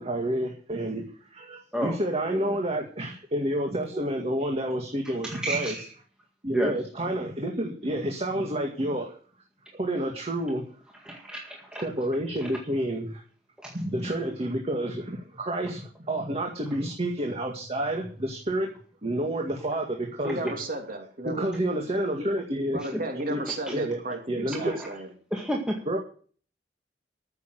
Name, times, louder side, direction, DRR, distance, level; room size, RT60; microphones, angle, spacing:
voice 1, 0.0-5.8 6.4-9.2 9.7-10.6 11.8-13.2 13.7-18.7 19.0-20.5 21.3-22.8 23.3-23.4 23.7-24.0 24.3-24.7 25.9-26.0, right 1 dB, 35° right, 1 dB, 2.1 m, -29 dB
voice 2, 5.3-5.8 6.5-6.7 11.1-11.8 13.6-13.7 23.7-23.8 24.6-24.8 25.3-25.8, right 1 dB, 5° right, -1 dB, 1.9 m, -30 dB
voice 3, 20.2-21.4 22.7-25.1, right 2 dB, 55° right, 3 dB, 3.1 m, -34 dB
14.0 x 7.0 x 7.8 m, 0.43 s
head